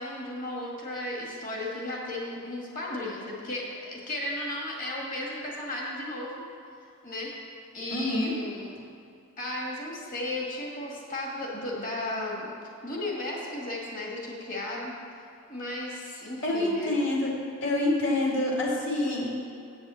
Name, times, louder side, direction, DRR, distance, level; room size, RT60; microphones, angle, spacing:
voice 1, 0.0-6.4 7.0-7.3 7.7-8.7 9.4-12.5 12.8-14.9 15.5-16.9, left 1 dB, 40° left, -2 dB, 1.9 m, -34 dB
voice 2, 7.9-8.3 16.4-17.3 17.6-19.3, left 1 dB, 55° left, -3 dB, 2.5 m, -26 dB
8.4 x 7.8 x 7.1 m, 2.6 s
head